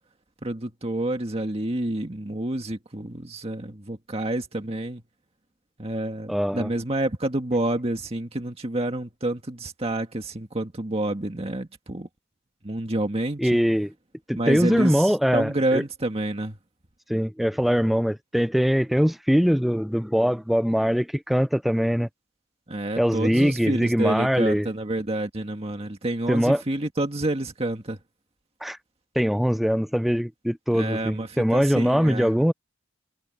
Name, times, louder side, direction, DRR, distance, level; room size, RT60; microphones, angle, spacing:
voice 1, 0.4-5.0 5.8-12.1 12.6-13.6 14.4-16.6 22.7-28.0 30.7-32.4, right 1 dB, 30° right, 1.7 m, -28 dB
voice 2, 6.3-6.7 13.4-13.9 14.3-15.8 17.1-22.1 23.0-24.7 26.3-26.6 28.6-28.8 29.2-32.5, equal, ahead, 0.4 m, -22 dB
head